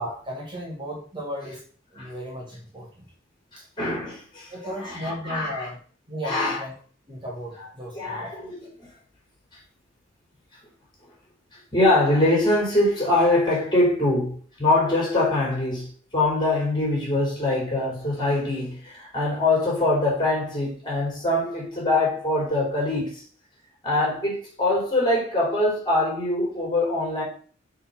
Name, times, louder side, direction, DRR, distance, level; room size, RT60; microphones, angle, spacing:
voice 1, 0.0-1.7 1.9-2.9 3.6-3.7 4.5-5.8 6.1-6.7 7.1-8.3, equal, 25° right, 1.8 m, -35 dB
voice 2, 3.8-4.5 4.8-5.7 6.2-6.6 8.0-8.9 11.7-23.2 23.8-27.2, left 2 dB, 25° left, 4.3 m, -23 dB
6.7 x 4.0 x 6.0 m
head